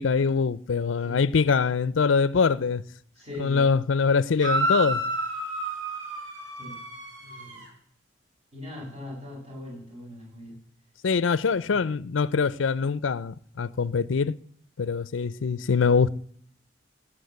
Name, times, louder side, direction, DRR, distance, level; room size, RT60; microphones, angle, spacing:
voice 1, 0.0-2.8 3.4-5.0 11.0-14.3 14.8-16.1, left 5 dB, 80° left, 0.5 m, -23 dB
voice 2, 3.2-3.7 6.6-6.8 7.2-7.7 8.5-10.6 11.6-11.8, left 1 dB, 30° right, 7.4 m, -40 dB
sound 1, 4.4-7.7, right 1 dB, 85° right, 5.2 m, -30 dB
16.5 x 9.1 x 8.1 m
head